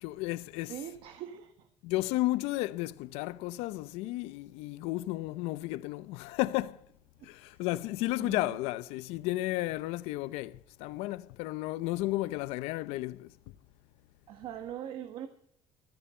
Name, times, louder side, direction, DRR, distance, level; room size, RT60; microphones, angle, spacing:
voice 1, 0.0-0.7 1.8-6.8 7.2-13.3, left 18 dB, 90° left, 0.6 m, -33 dB
voice 2, 0.7-1.7 7.2-7.6 8.2-8.6 14.3-15.3, right 10 dB, 55° right, 1.3 m, -42 dB
14.5 x 14.0 x 4.3 m
cardioid pair, 160°, 10 cm